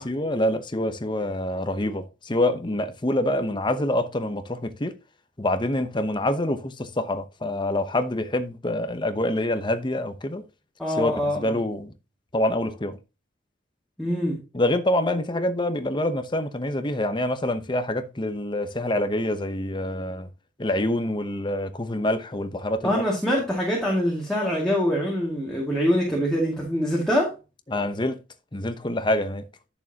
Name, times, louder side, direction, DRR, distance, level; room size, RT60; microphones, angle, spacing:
voice 1, 0.0-4.9 5.4-10.4 11.0-11.9 12.3-13.0 14.5-20.3 20.6-23.0 27.7-28.2 28.5-29.4, left 1 dB, 25° left, 0.9 m, -26 dB
voice 2, 10.8-11.6 14.0-14.4 22.8-27.3, equal, ahead, 2.2 m, -24 dB
11.0 x 6.8 x 2.9 m
head